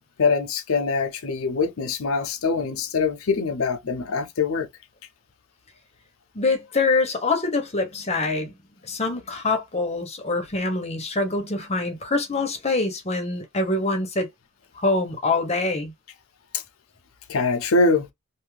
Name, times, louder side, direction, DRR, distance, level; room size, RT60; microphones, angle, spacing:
voice 1, 0.2-4.7 16.5-16.6 17.3-18.1, left 4 dB, 70° left, 0.6 m, -23 dB
voice 2, 6.3-8.6 8.8-14.3 14.8-15.9, left 3 dB, 30° left, 0.8 m, -25 dB
2.7 x 2.4 x 3.1 m
head